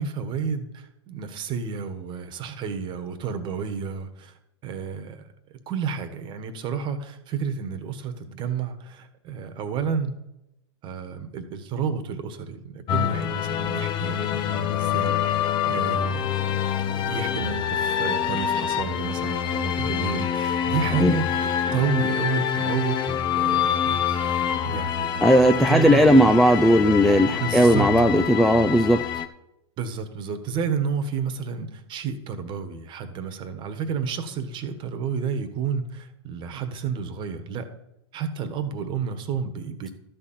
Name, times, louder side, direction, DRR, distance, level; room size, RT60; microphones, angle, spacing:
voice 1, 0.0-4.3 4.6-5.3 5.7-10.1 10.8-16.6 16.9-25.2 25.7-26.1 27.3-27.9 29.8-37.7 38.1-39.9, right 6 dB, 35° right, 9 dB, 1.4 m, -31 dB
sound 1, 12.9-29.3, left 9 dB, 30° left, 0.7 m, -26 dB
voice 2, 25.2-29.0, equal, ahead, 5 dB, 0.4 m, -17 dB
13.0 x 4.3 x 7.4 m, 0.87 s
hypercardioid pair, 110°, 15 cm